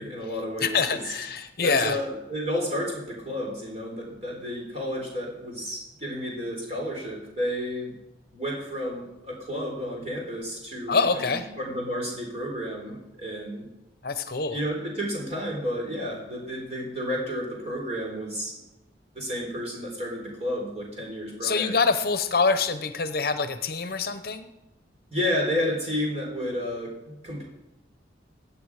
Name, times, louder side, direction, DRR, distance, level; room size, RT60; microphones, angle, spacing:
voice 1, 0.0-1.0 1.6-8.0 8.3-13.7 14.5-18.6 19.1-21.8 25.1-27.4, equal, 35° right, -1 dB, 3.9 m, -31 dB
voice 2, 0.6-2.0 10.9-11.5 14.0-14.6 21.4-24.5, left 4 dB, 55° left, 10 dB, 0.8 m, -25 dB
16.0 x 8.6 x 4.8 m, 0.96 s
head